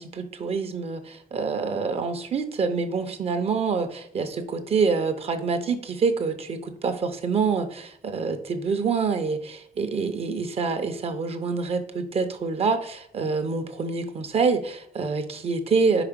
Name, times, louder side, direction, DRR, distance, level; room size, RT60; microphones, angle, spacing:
voice 1, 0.0-16.0, right 4 dB, 40° right, 7 dB, 0.6 m, -26 dB
5.1 x 4.9 x 5.0 m, 0.71 s
wide cardioid pair, 175°, 16 cm